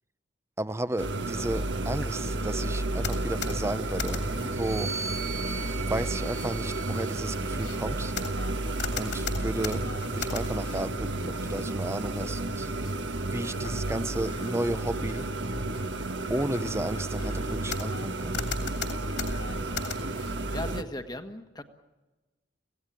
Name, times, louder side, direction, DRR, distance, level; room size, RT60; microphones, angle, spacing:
voice 1, 0.6-4.9 5.9-8.1 9.0-12.7 13.3-15.3 16.3-18.4, right 1 dB, 15° right, 13 dB, 0.7 m, -33 dB
sound 1, 1.0-20.8, right 2 dB, 70° right, 1.4 m, -32 dB
sound 2, 3.0-4.5 5.0-5.6 6.2-10.9 11.3-11.9 12.8-13.0 13.4-14.5 14.9-15.3 15.7-15.9 16.3-18.1 18.3-20.4, left 6 dB, 65° left, 3.1 m, -39 dB
sound 3, 4.4-8.0 8.9-10.5, right 5 dB, 85° right, 4.2 m, -41 dB
voice 2, 20.5-21.6, left 1 dB, 20° left, 7 dB, 1.4 m, -37 dB
26.0 x 17.5 x 9.1 m, 1.2 s
head